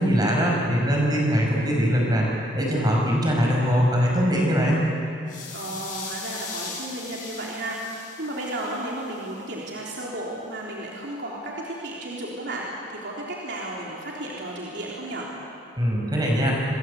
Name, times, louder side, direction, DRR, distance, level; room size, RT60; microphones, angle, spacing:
voice 1, 0.0-2.3 2.5-4.8 15.8-16.5, equal, 20° right, -1 dB, 6.0 m, -21 dB
sound 1, 5.3-9.3, left 4 dB, 40° left, 7.9 m, -39 dB
voice 2, 5.5-15.3, right 1 dB, 60° right, -4 dB, 3.6 m, -33 dB
27.5 x 21.5 x 8.4 m, 2.6 s
head